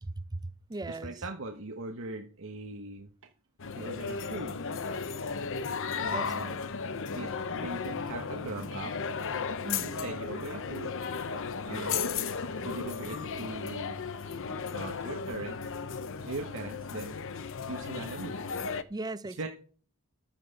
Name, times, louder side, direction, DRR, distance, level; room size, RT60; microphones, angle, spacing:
voice 1, 0.0-1.2 6.1-6.6 9.6-9.9 18.9-19.5, right 2 dB, 20° right, 0.6 m, -38 dB
voice 2, 0.9-3.1 3.7-4.5 6.0-6.6 7.0-8.9 9.8-11.0 11.7-12.3 12.6-14.0 14.7-15.6 16.2-17.2 17.7-18.3 19.4-19.5, right 2 dB, 65° right, 1.2 m, -40 dB
sound 1, 3.6-18.8, left 5 dB, 65° left, 0.8 m, -35 dB
12.0 x 9.1 x 5.3 m
head